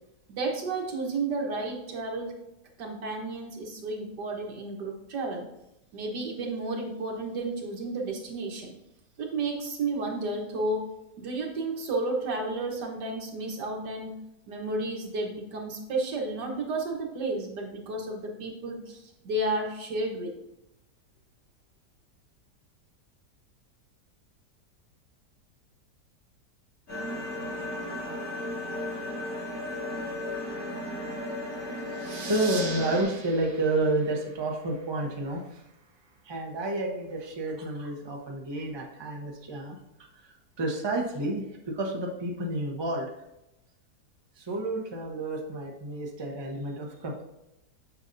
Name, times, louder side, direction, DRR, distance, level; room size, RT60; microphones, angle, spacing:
voice 1, 0.3-2.3 2.8-5.4 5.9-8.7 9.2-10.8 11.2-14.1 14.5-19.0 19.2-20.3, right 2 dB, 75° right, 1 dB, 1.9 m, -32 dB
sound 1, 26.9-33.0, left 1 dB, 55° left, 3.3 m, -35 dB
voice 2, 31.9-35.6 36.2-39.8 40.2-43.1 44.4-47.2, right 2 dB, 20° right, 0 dB, 0.8 m, -30 dB
sound 2, 32.0-35.2, right 4 dB, 45° right, 0.8 m, -41 dB
8.8 x 6.1 x 2.7 m, 0.88 s
omnidirectional pair, 1.8 m